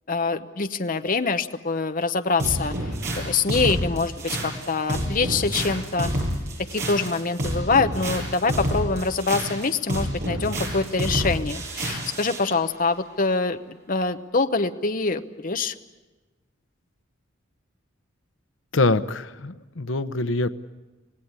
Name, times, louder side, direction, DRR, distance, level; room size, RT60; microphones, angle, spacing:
voice 1, 0.1-2.7 3.2-6.1 6.7-15.7, left 4 dB, 45° left, 7 dB, 0.9 m, -25 dB
sound 1, 2.4-12.5, right 1 dB, 55° right, 8.0 m, -29 dB
voice 2, 18.7-20.5, left 2 dB, 80° left, 12 dB, 0.9 m, -24 dB
26.0 x 19.0 x 9.6 m, 1.2 s
head